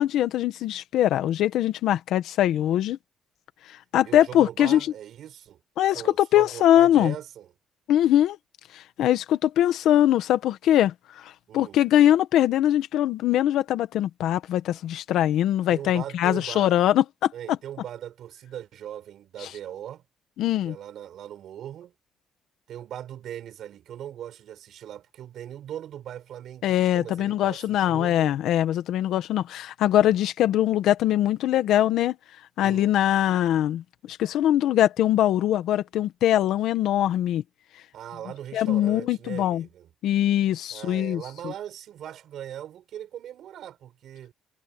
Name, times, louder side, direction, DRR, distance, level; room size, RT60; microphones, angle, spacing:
voice 1, 0.0-3.0 3.9-4.8 5.8-7.1 7.9-8.4 8.7-17.3 20.4-20.7 26.6-32.1 32.6-37.4 38.5-39.6 40.0-41.2, left 12 dB, 75° left, 1.6 m, -22 dB
voice 2, 4.0-5.6 5.9-7.5 11.5-11.8 15.7-16.8 17.3-20.0 20.6-21.9 22.7-28.3 32.6-33.0 37.9-39.9 40.7-44.3, right 10 dB, 60° right, 6.8 m, -39 dB
cardioid pair, 155°, 0 cm